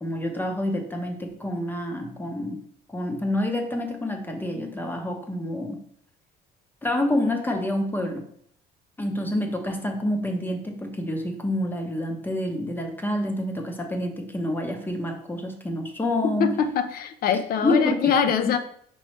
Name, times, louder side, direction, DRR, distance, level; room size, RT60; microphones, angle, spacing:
voice 1, 0.0-2.6 2.9-5.8 6.8-8.3 9.0-16.6 17.6-18.2, left 1 dB, 10° left, 3 dB, 0.7 m, -27 dB
voice 2, 16.4-18.6, left 7 dB, 60° left, 9 dB, 0.5 m, -23 dB
5.3 x 3.1 x 3.1 m, 0.65 s
cardioid pair, 110°, 17 cm